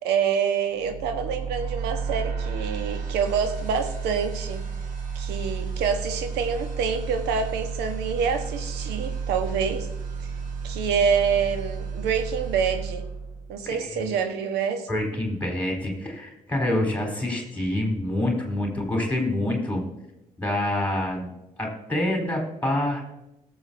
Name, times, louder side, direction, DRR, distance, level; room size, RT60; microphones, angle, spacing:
voice 1, 0.0-4.6 5.1-9.9 10.6-13.1 13.5-14.9, right 6 dB, 65° right, 7 dB, 1.4 m, -26 dB
sound 1, 0.7-13.8, right 5 dB, 45° right, 2.8 m, -32 dB
voice 2, 13.6-14.2 14.9-19.8 20.4-21.3 21.6-23.1, left 1 dB, 10° left, 0 dB, 4.3 m, -27 dB
21.5 x 7.1 x 2.8 m, 0.89 s
figure-of-eight pair, 45°, 18 cm